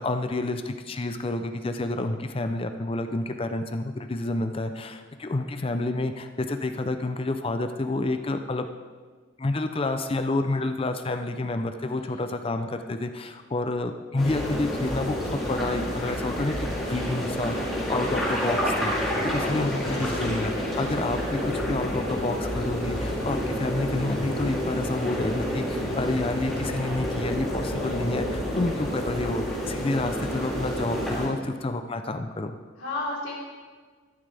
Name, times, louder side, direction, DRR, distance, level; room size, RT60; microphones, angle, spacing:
voice 1, 0.0-8.7 9.4-17.6 17.9-32.6, left 2 dB, 25° left, 8 dB, 0.5 m, -29 dB
voice 2, 11.9-12.3 19.4-20.1 32.8-33.3, left 2 dB, 80° left, -9 dB, 3.6 m, -35 dB
sound 1, 14.2-31.3, equal, ahead, 3.0 m, -29 dB
13.5 x 11.0 x 3.4 m, 1.5 s
head